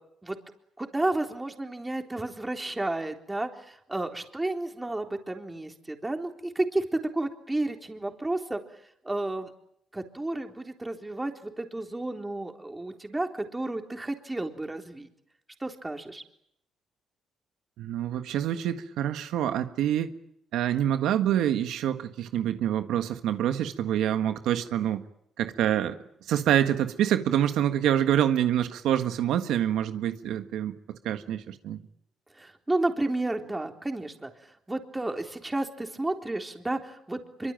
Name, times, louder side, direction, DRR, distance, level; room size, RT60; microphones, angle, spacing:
voice 1, 0.8-8.6 9.0-9.5 9.9-15.1 15.6-16.2 32.3-37.5, right 2 dB, 15° right, 4 dB, 3.8 m, -32 dB
voice 2, 17.8-20.1 20.5-25.0 25.4-31.8, right 10 dB, 85° right, 8 dB, 1.6 m, -26 dB
25.0 x 24.5 x 9.1 m, 0.75 s
cardioid pair, 90°, 0 cm